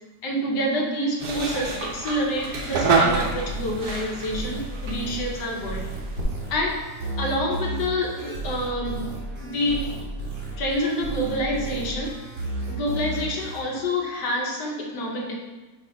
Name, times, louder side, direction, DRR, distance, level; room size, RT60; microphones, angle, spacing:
voice 1, 0.2-5.9 6.5-6.8 7.2-9.0 9.4-9.9 10.6-12.2 12.7-15.4, equal, 75° left, 0 dB, 1.6 m, -27 dB
sound 1, 1.2-6.2, right 4 dB, 65° right, 1.4 m, -27 dB
sound 2, 3.1-13.6, right 2 dB, 40° right, 1.2 m, -33 dB
5.9 x 3.4 x 4.8 m, 1.1 s
omnidirectional pair, 1.9 m